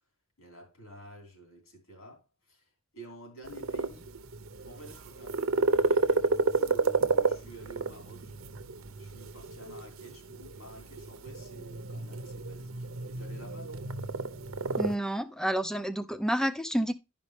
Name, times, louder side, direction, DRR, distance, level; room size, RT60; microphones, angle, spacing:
voice 1, 0.4-4.1 4.6-8.3 9.0-13.9, right 1 dB, 80° left, 3.6 m, -50 dB
sound 1, 3.4-14.9, right 3 dB, 80° right, 0.8 m, -31 dB
voice 2, 14.8-16.9, right 1 dB, 5° left, 0.4 m, -29 dB
11.5 x 5.2 x 3.3 m
head